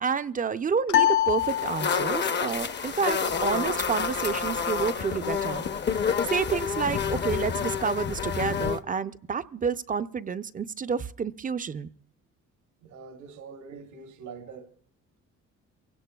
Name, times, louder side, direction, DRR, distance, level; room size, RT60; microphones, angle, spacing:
voice 1, 0.0-5.7 6.2-11.9, right 6 dB, 30° right, 0.4 m, -29 dB
sound 1, 0.9-2.4, left 12 dB, 75° left, 0.6 m, -25 dB
sound 2, 1.4-8.8, left 6 dB, 35° left, 0.7 m, -29 dB
voice 2, 12.8-14.7, right 5 dB, 75° right, 1.2 m, -44 dB
23.0 x 17.0 x 2.3 m
cardioid pair, 90°, 30 cm